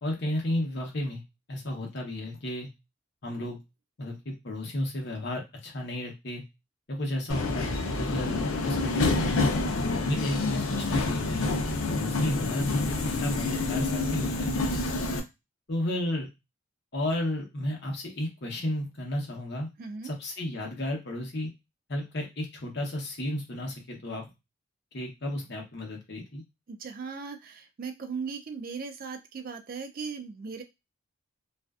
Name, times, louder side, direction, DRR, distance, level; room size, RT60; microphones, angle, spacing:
voice 1, 0.0-1.2 1.5-2.7 3.2-3.6 4.0-6.4 6.9-9.4 10.0-11.6 11.9-12.7 13.0-14.5 15.7-16.3 16.9-19.7 20.0-21.5 21.9-24.2 24.9-26.4, left 1 dB, 50° left, 0 dB, 0.8 m, -33 dB
Subway metro underground, 7.3-15.2, left 3 dB, 85° left, 0.5 m, -28 dB
voice 2, 19.8-20.1 26.7-30.6, right 5 dB, 45° right, 6 dB, 0.3 m, -38 dB
2.4 x 2.2 x 2.3 m, 0.23 s
head